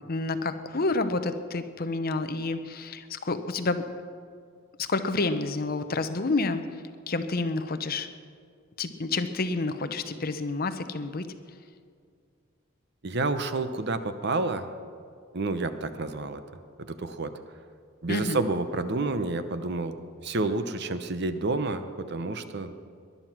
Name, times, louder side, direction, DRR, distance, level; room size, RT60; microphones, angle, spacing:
voice 1, 0.1-3.8 4.8-6.6 7.1-8.1 8.8-11.3 18.1-18.4, left 3 dB, 45° left, 10 dB, 0.8 m, -29 dB
voice 2, 13.0-14.7 15.3-16.4 16.9-17.3 18.0-20.0 20.2-22.7, right 3 dB, 55° right, 10 dB, 0.8 m, -29 dB
19.0 x 11.5 x 6.1 m, 2.2 s
head